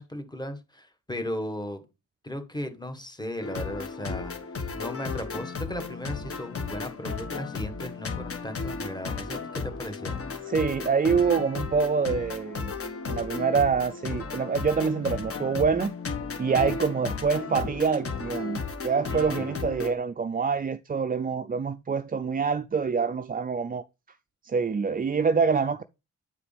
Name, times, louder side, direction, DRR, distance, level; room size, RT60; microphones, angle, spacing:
voice 1, 0.0-1.8 2.2-4.3 4.7-10.2 16.4-16.7 19.1-19.6, left 1 dB, 15° left, 1.6 m, -36 dB
sound 1, 3.4-19.9, left 4 dB, 45° left, 1.3 m, -34 dB
voice 2, 10.5-12.7 13.1-15.9 16.4-18.6 18.8-23.8 24.4-25.8, right 5 dB, 30° right, 0.4 m, -26 dB
9.6 x 5.0 x 3.4 m
cardioid pair, 85°, 32 cm